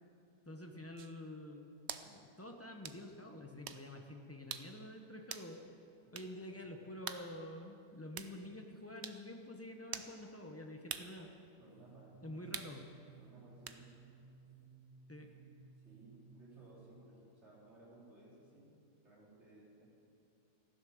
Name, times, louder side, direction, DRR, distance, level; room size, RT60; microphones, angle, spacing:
voice 1, 0.5-1.7 2.0-5.6 6.1-11.3 12.2-12.8 15.1-15.3, left 1 dB, 15° left, 3 dB, 0.5 m, -48 dB
sound 1, 1.0-1.1 1.9-2.1 2.8-3.0 3.7-3.8 4.5-4.7 5.3-5.5 6.1-6.3 7.1-7.3 8.2-8.3 9.0-9.2 9.9-10.1 10.9-11.1 12.5-12.8 13.7-13.8, right 8 dB, 60° right, 0.7 m, -44 dB
voice 2, 6.0-6.7 11.6-12.1 12.4-12.6 13.1-13.9 15.8-18.8 19.0-19.9, right 2 dB, 40° right, -6 dB, 4.1 m, -60 dB
sound 2, 11.6-16.8, right 5 dB, 90° right, 4.5 m, -60 dB
15.0 x 10.5 x 6.5 m, 2.7 s
omnidirectional pair, 1.8 m